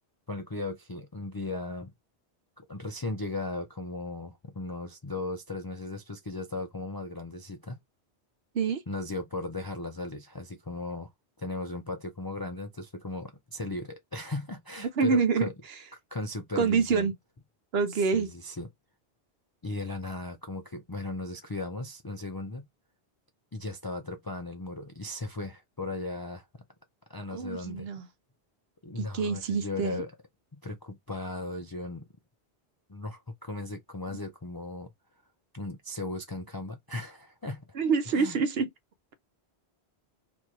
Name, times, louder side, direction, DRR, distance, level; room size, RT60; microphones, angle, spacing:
voice 1, 0.3-1.9 2.6-7.8 8.9-11.1 11.4-15.5 16.1-17.1 18.1-18.7 19.6-22.7 23.5-26.6 27.1-27.9 28.8-30.1 30.5-32.1 32.9-34.9 35.5-37.7 38.1-38.4, left 2 dB, 35° left, 0.3 m, -37 dB
voice 2, 15.0-15.5 16.6-17.1 17.7-18.3 27.3-28.1 29.0-30.0 37.7-38.7, right 5 dB, 70° right, 0.9 m, -26 dB
3.0 x 2.6 x 4.4 m
omnidirectional pair, 1.1 m